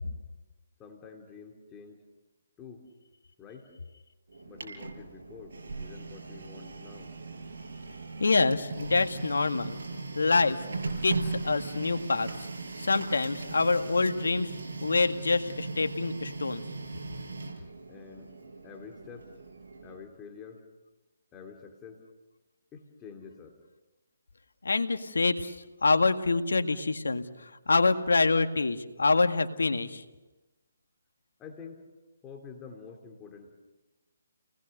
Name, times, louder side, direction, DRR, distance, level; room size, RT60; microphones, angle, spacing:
voice 1, 0.8-2.0 2.6-2.8 3.4-3.7 4.5-7.1 17.9-18.3 18.6-19.3 19.8-20.6 21.3-22.0 22.7-23.6 31.4-31.8 32.2-33.5, left 6 dB, 15° left, 2 dB, 2.9 m, -47 dB
Printer, 4.3-20.1, right 3 dB, 65° right, 5.7 m, -39 dB
voice 2, 8.2-9.8 10.2-10.7 11.0-12.3 12.8-14.5 14.8-16.6 24.6-25.6 25.8-30.0, left 3 dB, 85° left, 7 dB, 1.9 m, -26 dB
29.5 x 20.0 x 6.7 m, 1.1 s
hypercardioid pair, 155°, 0 cm